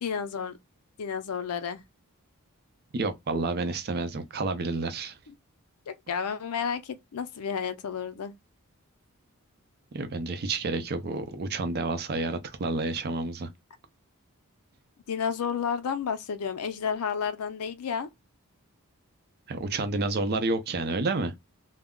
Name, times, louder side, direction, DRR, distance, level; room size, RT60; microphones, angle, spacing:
voice 1, 0.0-0.6 1.0-1.8 5.9-8.3 15.1-18.1, left 6 dB, 80° left, 0.4 m, -31 dB
voice 2, 2.9-5.2 9.9-13.5 19.5-21.3, right 3 dB, 45° right, 0.5 m, -29 dB
2.2 x 2.0 x 3.6 m
head